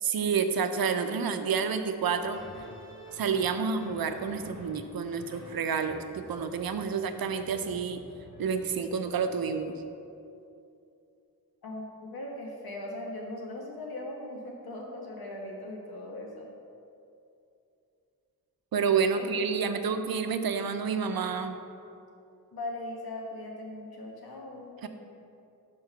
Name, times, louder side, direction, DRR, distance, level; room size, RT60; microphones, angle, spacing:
voice 1, 0.0-2.4 3.1-8.0 8.4-9.8 18.7-21.6 24.8-24.9, right 6 dB, 75° right, 8 dB, 0.6 m, -29 dB
sound 1, 2.0-9.8, equal, 60° left, 1.8 m, -49 dB
voice 2, 11.6-16.5 19.1-19.3 22.5-24.8, left 1 dB, 90° left, -1 dB, 1.3 m, -39 dB
5.7 x 5.3 x 5.7 m, 2.6 s
wide cardioid pair, 105°, 36 cm